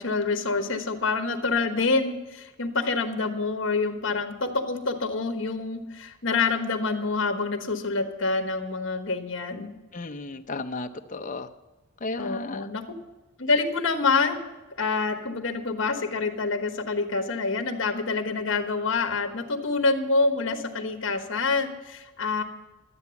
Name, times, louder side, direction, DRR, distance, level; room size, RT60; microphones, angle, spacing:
voice 1, 0.0-9.7 12.2-12.8 13.4-14.5 14.8-22.4, left 4 dB, 65° left, 6 dB, 1.4 m, -27 dB
voice 2, 9.9-11.5 12.0-12.7, left 3 dB, 40° left, 7 dB, 0.7 m, -34 dB
12.5 x 8.7 x 7.1 m, 1.1 s
head